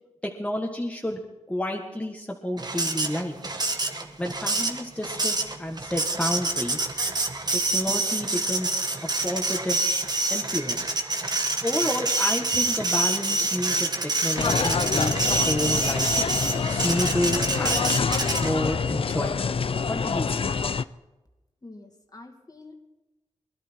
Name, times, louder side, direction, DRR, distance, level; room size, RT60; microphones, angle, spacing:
voice 1, 0.2-1.2 1.5-3.4 4.2-6.8 7.5-8.8 9.2-9.8 10.3-11.0 11.6-16.1 16.6-17.9 18.4-19.5 19.8-20.5, left 1 dB, 10° left, 0 dB, 1.6 m, -30 dB
Printer, 2.6-18.7, right 2 dB, 35° right, 1.4 m, -27 dB
sound 1, 14.4-20.8, left 5 dB, 50° left, 0.5 m, -26 dB
voice 2, 21.6-22.9, left 2 dB, 30° left, 3 dB, 2.3 m, -46 dB
21.5 x 11.5 x 4.6 m, 1.1 s
cardioid pair, 65°, 12 cm